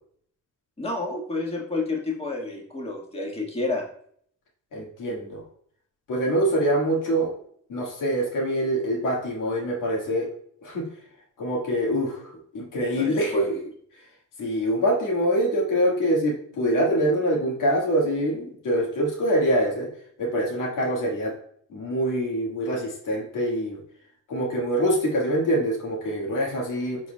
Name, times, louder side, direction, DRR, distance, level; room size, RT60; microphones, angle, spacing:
voice 1, 0.8-3.9 13.0-13.6, left 3 dB, 20° left, -1 dB, 1.6 m, -30 dB
voice 2, 4.7-5.4 6.1-7.4 7.7-10.3 10.6-10.8 11.4-13.4 14.4-19.9 20.2-21.3 21.7-23.8 24.3-27.0, equal, 75° left, -2 dB, 1.8 m, -24 dB
12.0 x 4.2 x 2.2 m, 0.63 s
cardioid pair, 85°, 31 cm